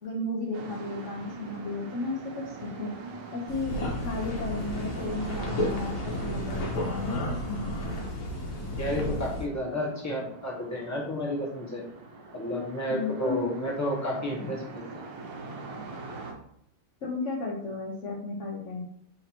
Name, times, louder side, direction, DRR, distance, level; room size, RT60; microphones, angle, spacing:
voice 1, 0.0-2.9 3.3-8.0 12.9-13.5 17.0-18.8, left 3 dB, 55° left, -3 dB, 0.9 m, -34 dB
sound 1, 0.5-16.3, right 3 dB, 75° right, 1.5 m, -44 dB
sound 2, 3.5-9.5, left 1 dB, 85° left, 1.7 m, -32 dB
voice 2, 8.8-11.8 12.3-14.6, left 1 dB, 15° left, -4 dB, 0.7 m, -31 dB
4.1 x 2.8 x 4.3 m, 0.71 s
omnidirectional pair, 2.0 m